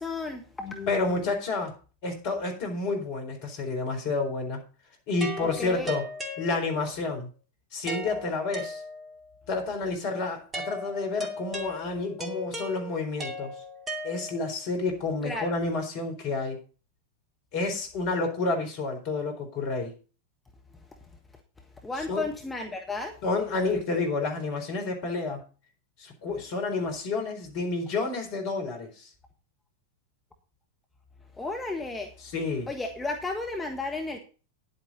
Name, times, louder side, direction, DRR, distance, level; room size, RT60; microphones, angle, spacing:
voice 1, 0.0-1.3 5.4-6.0 15.2-15.6 21.8-23.1 31.4-32.1 32.7-34.2, left 3 dB, 10° left, 2 dB, 1.5 m, -33 dB
voice 2, 0.9-1.7 2.0-4.6 5.1-6.0 6.4-7.3 7.7-8.8 9.5-13.5 14.0-16.6 17.5-19.9 22.1-22.3 23.2-25.4 26.0-29.1 32.2-32.7, left 3 dB, 45° left, 4 dB, 4.1 m, -29 dB
sound 1, 5.2-7.0 7.9-9.3 10.5-14.6, left 1 dB, 20° right, 2.4 m, -38 dB
10.5 x 8.7 x 4.2 m, 0.35 s
figure-of-eight pair, 90°, 0 cm